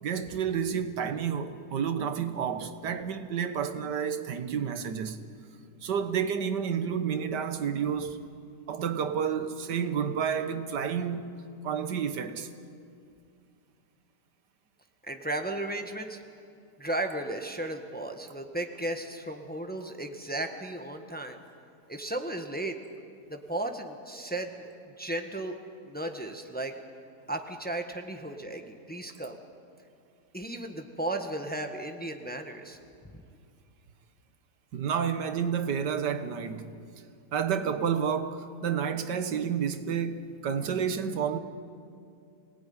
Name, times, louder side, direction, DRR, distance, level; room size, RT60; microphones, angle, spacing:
voice 1, 0.0-5.2 5.8-8.2 8.7-11.3 11.6-12.5 34.7-36.7 37.3-41.4, right 7 dB, 85° right, 1.8 m, -30 dB
voice 2, 15.0-16.2 16.8-21.4 21.9-22.8 23.3-25.6 25.8-26.7 27.3-29.4 30.3-32.8 33.1-33.2, right 1 dB, 5° left, 1.3 m, -35 dB
26.0 x 19.0 x 9.7 m
omnidirectional pair, 1.8 m